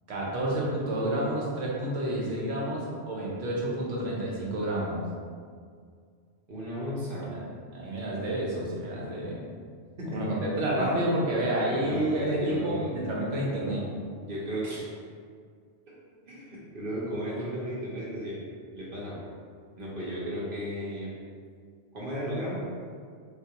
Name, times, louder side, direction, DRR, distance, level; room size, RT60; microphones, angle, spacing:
voice 1, 0.1-5.0 7.2-7.5 7.7-9.4 10.0-13.9, right 1 dB, 85° right, -4 dB, 1.1 m, -29 dB
voice 2, 6.5-7.3 10.0-10.2 10.8-11.0 11.8-13.0 14.2-14.9 16.3-18.4 18.7-19.2 19.8-21.2 21.9-22.6, equal, 55° right, -7 dB, 0.9 m, -34 dB
3.8 x 2.4 x 2.8 m, 2.1 s
omnidirectional pair, 1.2 m